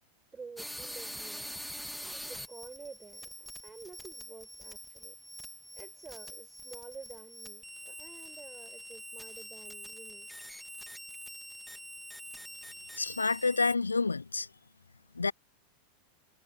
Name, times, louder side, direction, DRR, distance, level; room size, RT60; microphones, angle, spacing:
voice 1, 0.3-1.6 2.1-5.2 5.7-10.3, right 5 dB, 15° right, 6.6 m, -50 dB
sound 1, 0.6-13.7, equal, ahead, 1.7 m, -45 dB
voice 2, 13.0-14.5 15.2-15.3, left 4 dB, 80° left, 0.4 m, -29 dB
figure-of-eight pair, 90°, 0 cm